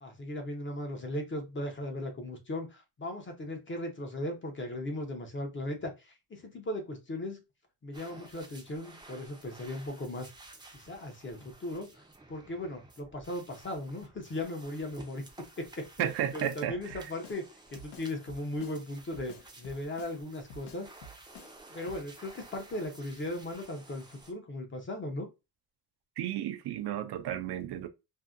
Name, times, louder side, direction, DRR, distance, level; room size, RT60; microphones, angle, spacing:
voice 1, 0.0-7.4 7.8-10.3 10.7-15.2 15.6-15.9 16.3-17.4 17.7-20.9 21.7-25.3, left 1 dB, 30° left, 0.6 m, -37 dB
sound 1, 7.9-24.3, right 2 dB, 10° right, 0.5 m, -53 dB
voice 2, 16.0-17.1 26.2-27.9, right 11 dB, 75° right, 0.5 m, -33 dB
Drum kit, 16.9-17.4 17.8-18.8 19.1-20.2 20.5-21.5 21.9-22.0, left 1 dB, 85° left, 0.6 m, -50 dB
2.6 x 2.6 x 2.4 m
wide cardioid pair, 150°, 40 cm